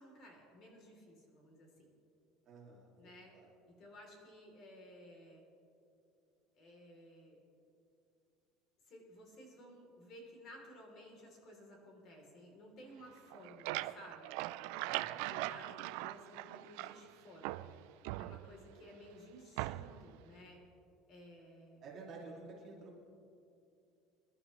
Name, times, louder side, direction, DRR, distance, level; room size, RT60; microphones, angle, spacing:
voice 1, 0.0-1.9 3.0-3.3 3.7-5.4 6.5-7.4 8.9-14.3 15.0-17.7 18.2-20.6 21.1-21.8, equal, 40° left, 1 dB, 3.3 m, -56 dB
voice 2, 2.4-3.5 14.8-15.3 21.8-23.0, right 3 dB, 30° right, -4 dB, 2.6 m, -52 dB
sound 1, 13.2-17.1 17.4-18.8 19.6-20.1, right 17 dB, 70° right, 0.3 m, -41 dB
27.0 x 12.0 x 3.2 m, 2.6 s
cardioid pair, 170°, 0 cm